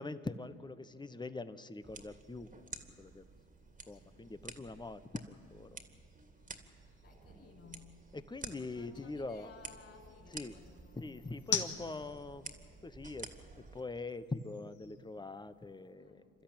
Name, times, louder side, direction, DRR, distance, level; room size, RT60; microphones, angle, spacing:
voice 1, 0.0-2.5 3.0-3.2 3.9-5.0 5.3-5.8 8.1-9.5 10.3-10.5 11.0-12.5 12.8-13.3 13.7-16.2, left 3 dB, 10° left, 13 dB, 1.1 m, -43 dB
sound 1, 1.7-15.9, left 7 dB, 55° left, 2.5 m, -47 dB
sound 2, 1.8-13.8, right 3 dB, 20° right, 2.3 m, -52 dB
voice 2, 3.9-4.7 7.0-7.9 8.4-11.4 15.9-16.3, left 4 dB, 35° left, -4 dB, 5.5 m, -58 dB
28.5 x 13.0 x 8.9 m, 2.4 s
hypercardioid pair, 70°, 35 cm